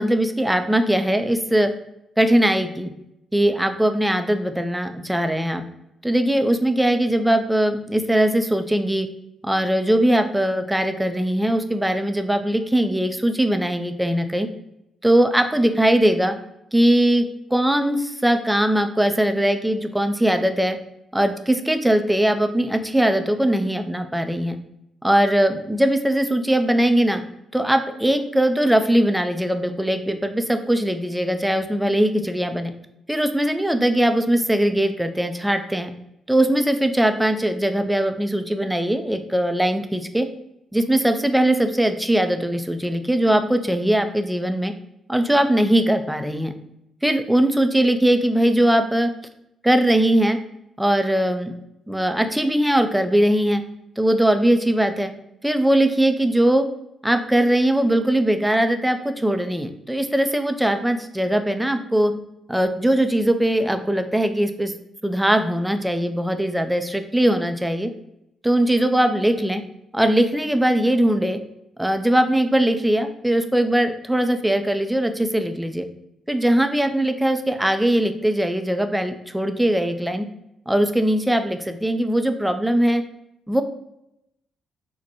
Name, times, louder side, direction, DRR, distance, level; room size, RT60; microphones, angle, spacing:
voice 1, 0.0-1.7 2.2-2.9 3.3-5.6 6.0-9.1 9.4-14.5 15.0-16.3 16.7-20.8 21.1-24.6 25.0-27.2 27.5-32.7 33.1-35.9 36.3-40.3 40.7-44.7 45.1-46.5 47.0-49.1 49.6-50.4 50.8-51.5 51.9-53.6 54.0-55.1 55.4-56.7 57.0-62.1 62.5-64.7 65.0-67.9 68.4-69.6 69.9-71.4 71.8-75.9 76.3-80.3 80.7-83.0 83.5-83.6, right 1 dB, 5° right, 7 dB, 0.4 m, -20 dB
4.0 x 2.2 x 2.9 m, 0.82 s
hypercardioid pair, 40°, 0 cm